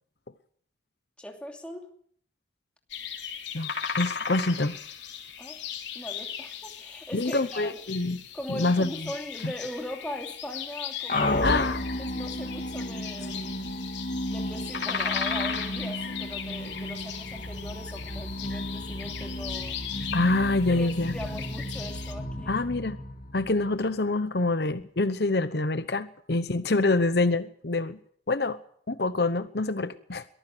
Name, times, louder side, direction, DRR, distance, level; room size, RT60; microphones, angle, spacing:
voice 1, 1.2-1.9 5.4-5.6 5.9-7.8 8.3-11.7 12.1-13.6 14.3-20.1 20.7-22.5, left 1 dB, 5° left, 2 dB, 2.8 m, -40 dB
sound 1, 2.9-22.1, left 7 dB, 80° left, 3.2 m, -37 dB
voice 2, 3.5-4.8 7.1-8.2 8.5-8.9 9.4-9.5 11.4-11.8 20.1-21.1 22.5-23.0 23.3-28.0 28.3-28.6 28.9-30.2, left 2 dB, 65° left, 12 dB, 0.9 m, -26 dB
sound 2, 11.1-24.0, left 1 dB, 45° left, 2.4 m, -33 dB
22.5 x 14.5 x 7.9 m, 0.62 s
head